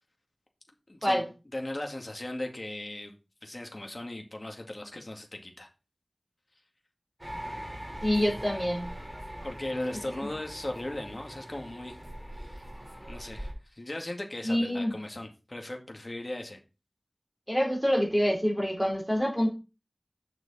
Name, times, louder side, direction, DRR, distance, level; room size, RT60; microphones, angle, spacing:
voice 1, 0.9-1.2 1.5-3.1 3.4-5.7 9.4-12.0 12.3-12.7 13.1-16.6, left 1 dB, 55° left, 3 dB, 2.3 m, -38 dB
sound 1, 7.2-13.5, equal, 25° right, 4.8 m, -41 dB
voice 2, 8.0-8.9 14.4-14.9 17.5-19.5, equal, 5° left, 0 dB, 4.0 m, -26 dB
9.4 x 6.4 x 4.3 m, 0.30 s
wide cardioid pair, 50°, 0 cm